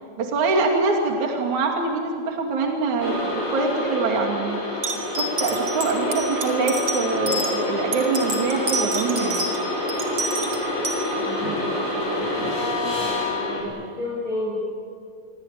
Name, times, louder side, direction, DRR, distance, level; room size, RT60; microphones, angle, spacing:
voice 1, 0.2-4.6 5.1-9.5, right 3 dB, 60° right, 1 dB, 3.9 m, -24 dB
sound 1, 3.0-13.6, left 1 dB, 45° left, 8.0 m, -27 dB
sound 2, 4.8-7.5 7.9-9.6 9.9-11.0, right 2 dB, 35° right, 3.9 m, -28 dB
voice 2, 11.1-12.5 13.0-14.6, left 1 dB, 25° left, -7 dB, 8.5 m, -32 dB
27.5 x 24.0 x 9.0 m, 2.2 s
omnidirectional pair, 4.0 m